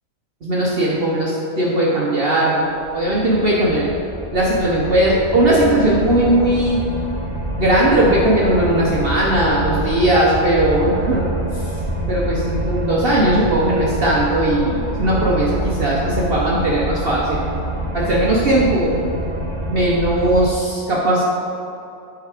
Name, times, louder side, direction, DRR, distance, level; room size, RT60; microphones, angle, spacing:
voice 1, 0.4-2.6 2.9-3.9 4.3-6.8 7.6-11.6 12.1-17.4 17.9-18.9 19.7-21.3, right 1 dB, 45° right, -5 dB, 1.0 m, -18 dB
sound 1, 2.8-20.5, equal, 20° right, 1.8 m, -26 dB
8.2 x 4.7 x 4.9 m, 2.7 s
omnidirectional pair, 1.5 m